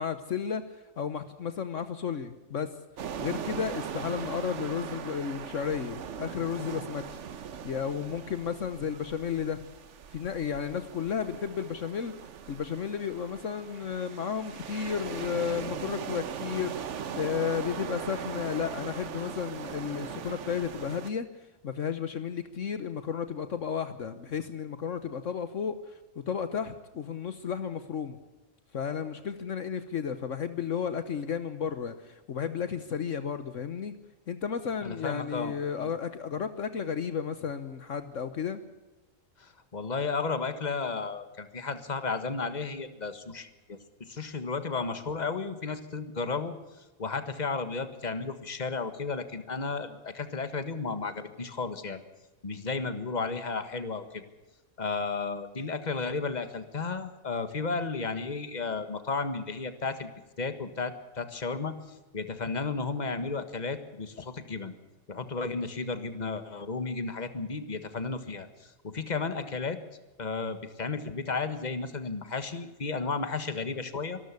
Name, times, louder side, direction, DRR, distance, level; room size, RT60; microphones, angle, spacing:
voice 1, 0.0-2.7 3.2-7.2 7.6-9.6 10.1-12.1 12.5-16.8 17.1-21.3 21.6-28.2 28.7-33.9 34.3-38.6, left 7 dB, 65° left, 11 dB, 1.4 m, -33 dB
sound 1, 3.0-21.1, right 7 dB, 60° right, 1.2 m, -39 dB
voice 2, 34.8-35.5 35.8-35.9 39.4-43.8 44.1-46.5 47.0-52.0 52.4-54.2 54.8-60.1 60.4-61.7 62.1-64.7 65.1-69.8 70.2-74.2, left 4 dB, 30° left, 10 dB, 1.7 m, -33 dB
25.0 x 13.0 x 8.3 m, 1.1 s
omnidirectional pair, 1.4 m